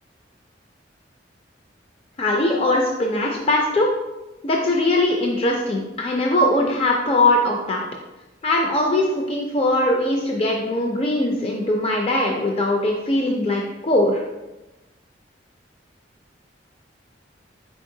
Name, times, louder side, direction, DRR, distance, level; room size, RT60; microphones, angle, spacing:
voice 1, 2.2-3.9 4.4-7.9 8.4-14.2, left 1 dB, 30° left, 0 dB, 0.4 m, -21 dB
4.5 x 4.0 x 2.7 m, 1.0 s
head